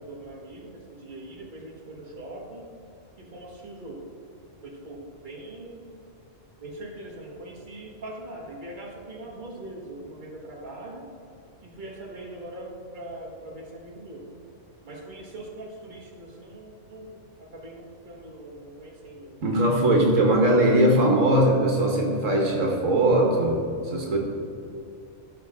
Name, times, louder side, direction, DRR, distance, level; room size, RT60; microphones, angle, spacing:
voice 1, 0.0-2.7 3.2-4.1 4.6-5.9 6.6-11.1 11.6-14.3 14.8-19.5 20.7-20.9, right 1 dB, 40° right, -2 dB, 1.8 m, -41 dB
voice 2, 19.4-24.2, right 1 dB, 80° right, 0 dB, 1.7 m, -20 dB
16.0 x 6.3 x 3.7 m, 2.5 s
omnidirectional pair, 1.3 m